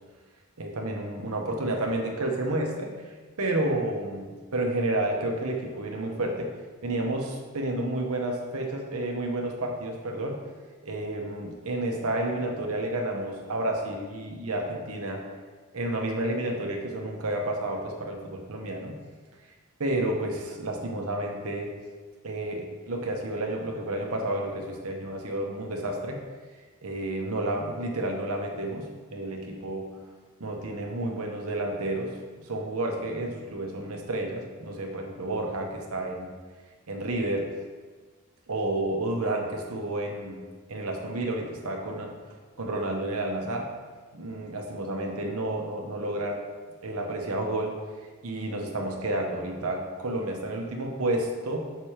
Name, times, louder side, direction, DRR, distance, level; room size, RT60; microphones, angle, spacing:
voice 1, 0.6-6.5 6.8-10.5 10.8-15.2 15.7-19.0 19.8-21.7 22.2-26.2 26.8-29.9 30.4-32.1 32.4-36.3 36.9-37.5 38.5-42.1 42.6-43.7 44.1-46.4 46.8-47.8 48.2-51.8, right 1 dB, 80° right, 1 dB, 1.0 m, -30 dB
6.5 x 5.9 x 2.9 m, 1.4 s
head